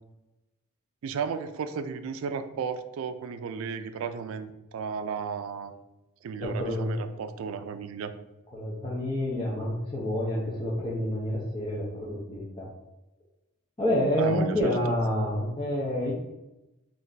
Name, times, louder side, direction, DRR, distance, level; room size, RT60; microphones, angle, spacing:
voice 1, 1.0-5.7 6.2-8.1 14.2-14.6, right 6 dB, 75° right, 9 dB, 0.3 m, -34 dB
voice 2, 6.4-7.0 8.5-12.7 13.8-16.1, equal, 25° left, -7 dB, 0.6 m, -28 dB
3.3 x 2.5 x 3.9 m, 0.96 s
head